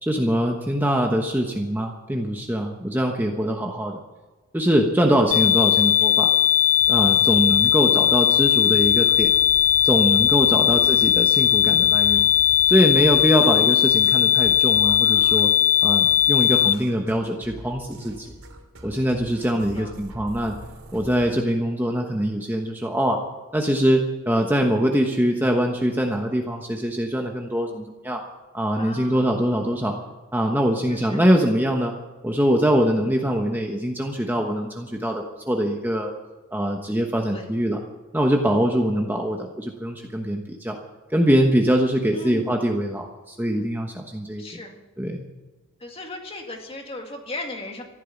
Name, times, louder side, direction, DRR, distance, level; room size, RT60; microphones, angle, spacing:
voice 1, 0.0-4.0 4.5-6.3 6.9-9.3 9.8-12.3 12.7-15.5 15.8-18.3 18.8-20.5 20.9-23.2 23.5-28.2 28.5-29.9 30.3-31.9 32.2-36.1 36.5-37.8 38.1-40.8 41.1-44.6 45.0-45.2, equal, 10° right, 2 dB, 1.1 m, -23 dB
sound 1, 5.3-16.7, left 11 dB, 80° left, 0.8 m, -18 dB
voice 2, 5.4-5.7 6.1-6.2 10.7-10.9 14.5-14.9 19.7-20.0 28.8-29.3 30.8-31.3 37.3-37.5 38.8-39.0 42.1-42.5 44.4-44.8 45.8-47.8, left 1 dB, 25° left, 3 dB, 2.1 m, -37 dB
sound 2, 6.8-21.3, right 1 dB, 80° right, 2.9 m, -43 dB
14.5 x 12.0 x 7.2 m, 1.2 s
head